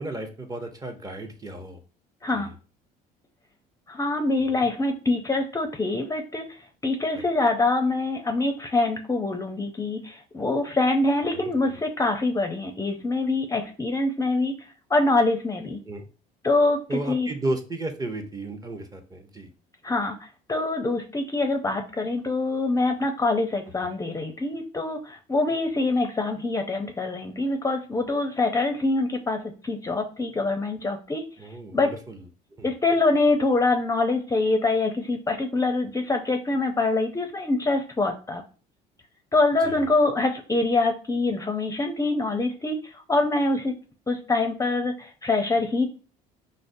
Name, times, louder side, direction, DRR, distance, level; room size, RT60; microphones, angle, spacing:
voice 1, 0.0-1.8 2.3-2.5 4.5-4.7 7.1-7.2 11.3-11.8 15.9-16.1 16.9-19.5 23.8-23.9 31.4-32.2 32.6-32.7 39.6-39.9, right 2 dB, 20° right, 4 dB, 0.7 m, -34 dB
voice 2, 3.9-14.5 14.9-15.8 16.4-17.3 19.8-31.9 32.6-38.4 39.3-43.7 44.1-45.9, left 2 dB, 20° left, 4 dB, 0.5 m, -25 dB
5.0 x 2.1 x 2.6 m, 0.37 s
supercardioid pair, 85°, 17 cm